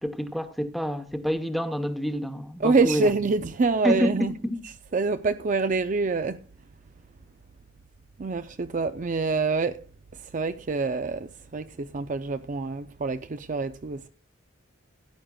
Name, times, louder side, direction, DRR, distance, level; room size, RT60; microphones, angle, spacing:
voice 1, 0.0-3.1 3.8-4.6, equal, ahead, 0.9 m, -28 dB
voice 2, 2.6-4.4 4.6-6.4 8.2-9.8 10.1-14.1, right 4 dB, 40° right, 0.4 m, -26 dB
17.0 x 10.0 x 2.3 m
head